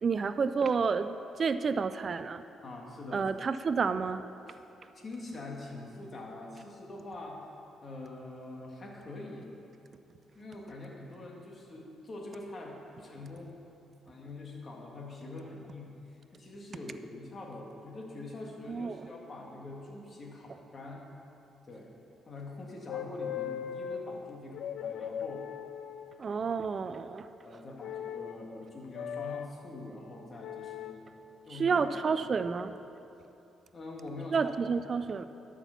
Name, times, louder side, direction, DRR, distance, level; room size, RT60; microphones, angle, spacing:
voice 1, 0.0-2.4 3.1-4.2 18.7-19.0 26.2-27.3 31.5-32.7 34.3-35.3, right 5 dB, 45° right, 11 dB, 0.3 m, -30 dB
voice 2, 2.6-3.3 4.5-4.6 4.9-7.4 7.8-9.4 10.3-13.5 14.1-21.0 21.7-21.9 22.3-25.4 27.4-31.8 32.1-32.2 33.7-34.5, left 2 dB, 40° left, -1 dB, 1.8 m, -44 dB
sound 1, 22.9-24.0 24.5-26.2 27.8-28.4 28.9-29.5 30.4-31.0 31.8-32.2, left 9 dB, 80° left, 0.4 m, -38 dB
12.0 x 6.0 x 5.8 m, 2.9 s
cardioid pair, 90°, 0 cm